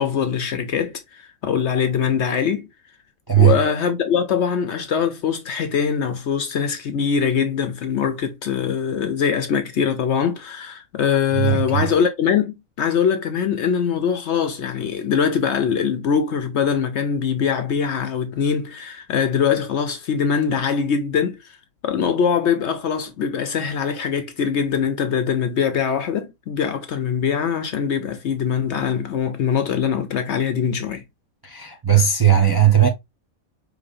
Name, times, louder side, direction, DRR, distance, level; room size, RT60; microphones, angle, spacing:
voice 1, 0.0-2.7 3.4-21.6 21.8-31.0, left 7 dB, 60° left, 0.8 m, -22 dB
voice 2, 3.3-3.6 11.3-11.9 31.4-32.9, right 10 dB, 25° right, 0.5 m, -17 dB
5.1 x 3.3 x 2.5 m
omnidirectional pair, 1.5 m